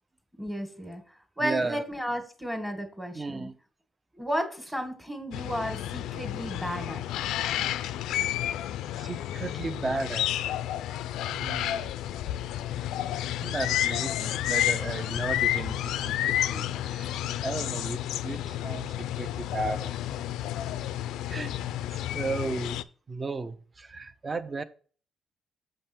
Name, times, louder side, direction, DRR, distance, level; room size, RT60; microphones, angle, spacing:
voice 1, 0.4-3.5 4.1-7.0, equal, 10° right, 1.9 m, -33 dB
voice 2, 1.4-1.8 3.1-3.5 9.0-10.3 11.3-11.9 13.4-15.8 16.0-19.9 21.3-21.5 22.1-22.8 23.1-24.6, right 3 dB, 30° right, 0.8 m, -34 dB
sound 1, 5.3-22.8, left 12 dB, 90° left, 0.4 m, -31 dB
7.7 x 5.4 x 4.4 m
cardioid pair, 90°, 0 cm